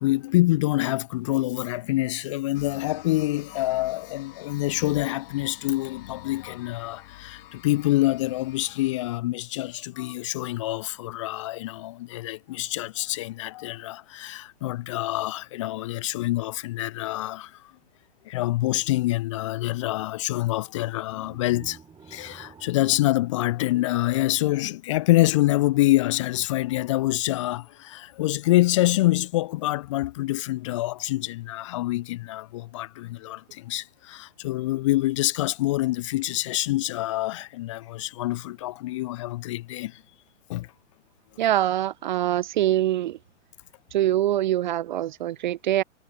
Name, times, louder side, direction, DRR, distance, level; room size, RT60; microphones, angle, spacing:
voice 1, 0.0-17.6 18.3-21.8 22.1-40.0 40.5-40.7, left 17 dB, 25° left, 0.4 m, -26 dB
sound 1, 2.5-9.2, left 15 dB, 50° left, 2.5 m, -47 dB
sound 2, 21.1-24.3, right 6 dB, 10° right, 7.1 m, -50 dB
voice 2, 41.4-43.2 43.9-45.8, right 13 dB, 40° right, 0.4 m, -24 dB
hypercardioid pair, 130°, 36 cm